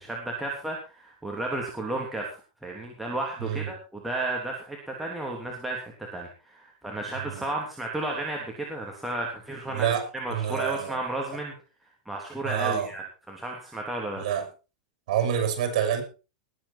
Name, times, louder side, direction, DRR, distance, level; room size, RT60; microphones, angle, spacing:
voice 1, 0.0-11.5 12.0-14.2, right 2 dB, 5° right, -1 dB, 3.3 m, -33 dB
voice 2, 3.4-3.7 7.1-7.4 9.7-11.0 12.4-12.9 14.2-14.5 15.1-16.0, right 9 dB, 65° right, 7 dB, 6.4 m, -28 dB
20.0 x 9.0 x 4.5 m, 0.33 s
hypercardioid pair, 125°, 4 cm